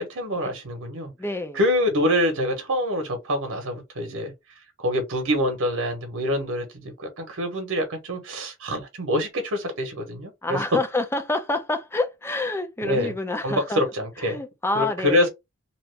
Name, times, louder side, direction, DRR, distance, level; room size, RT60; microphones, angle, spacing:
voice 1, 0.0-1.1 1.5-4.3 4.8-10.6 12.8-13.1 13.4-14.4 14.7-15.3, equal, 60° right, 1.0 m, -26 dB
voice 2, 1.2-1.6 10.4-13.8 14.2-15.3, left 2 dB, 10° left, 0.6 m, -27 dB
2.9 x 2.6 x 3.2 m
head